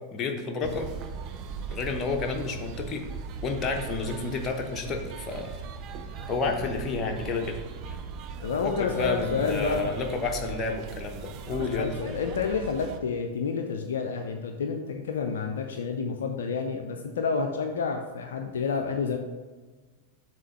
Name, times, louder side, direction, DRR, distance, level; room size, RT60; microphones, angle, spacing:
voice 1, 0.1-0.9 1.7-3.0 3.4-5.5 6.3-7.6 7.9-8.0 8.6-11.9, left 4 dB, 25° left, 3 dB, 0.9 m, -30 dB
sound 1, 0.6-13.0, right 5 dB, 40° right, 0.5 m, -39 dB
voice 2, 8.4-10.0 11.5-19.2, left 5 dB, 65° left, 4 dB, 0.4 m, -29 dB
7.2 x 3.0 x 5.6 m, 1.3 s
figure-of-eight pair, 90°, 0 cm